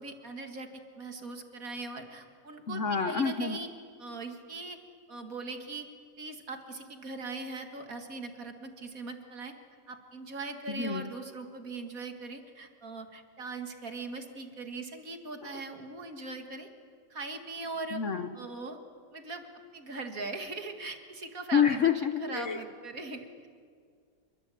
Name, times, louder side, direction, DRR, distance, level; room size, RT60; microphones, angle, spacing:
voice 1, 0.0-3.7 4.0-4.8 5.1-5.9 6.2-9.5 9.9-16.7 17.1-18.0 18.3-18.8 19.1-19.5 19.7-23.5, right 3 dB, 50° right, 6 dB, 2.4 m, -40 dB
voice 2, 2.7-3.6 10.7-11.1 15.4-15.6 17.9-18.4 21.5-22.6, left 7 dB, 50° left, 9 dB, 1.2 m, -28 dB
27.5 x 23.0 x 8.5 m, 2.1 s
omnidirectional pair, 1.9 m